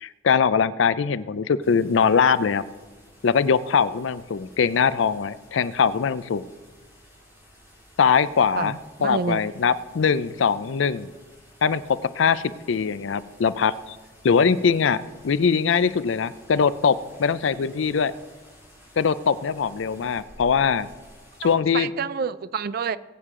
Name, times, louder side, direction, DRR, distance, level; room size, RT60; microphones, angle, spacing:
voice 1, 0.0-2.6 3.2-6.4 8.0-8.7 9.0-11.1 11.6-14.0 14.2-18.1 19.0-20.9 21.4-21.9, left 6 dB, 70° left, 16 dB, 0.4 m, -22 dB
sound 1, 1.6-21.5, equal, 10° right, 3.9 m, -52 dB
voice 2, 8.6-9.4 21.4-23.0, right 5 dB, 50° right, 16 dB, 0.4 m, -28 dB
20.5 x 8.4 x 3.7 m, 1.3 s
head